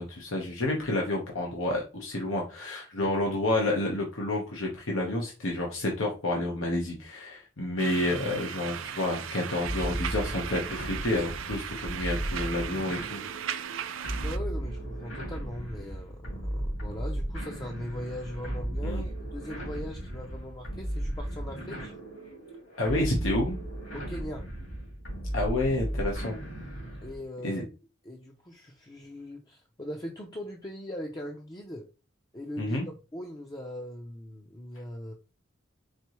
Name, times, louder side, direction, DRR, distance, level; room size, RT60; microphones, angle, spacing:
voice 1, 0.0-13.2 18.8-19.0 22.8-23.6 25.3-26.4 27.4-27.6 32.6-32.9, left 1 dB, 85° left, -1 dB, 1.1 m, -29 dB
sound 1, 7.8-14.4, right 9 dB, 80° right, 0.5 m, -37 dB
sound 2, 9.6-27.2, right 1 dB, 70° left, 2.6 m, -35 dB
voice 2, 14.2-21.9 23.9-24.4 27.0-27.7 28.0-31.9 32.3-32.8 33.1-35.1, left 1 dB, 20° left, 1 dB, 0.6 m, -40 dB
4.7 x 3.7 x 3.0 m, 0.31 s
head